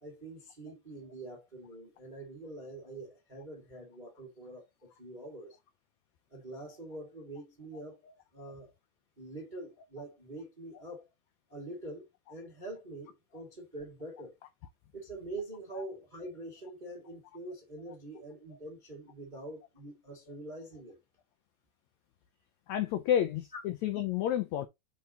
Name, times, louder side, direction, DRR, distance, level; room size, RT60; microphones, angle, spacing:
voice 1, 0.0-5.6 6.3-8.0 8.3-8.7 9.2-11.0 11.5-14.3 14.9-21.0 23.5-23.6, right 2 dB, 35° right, 0.7 m, -45 dB
voice 2, 22.7-24.7, left 10 dB, 90° left, 1.6 m, -30 dB
5.8 x 4.6 x 4.0 m
omnidirectional pair, 4.0 m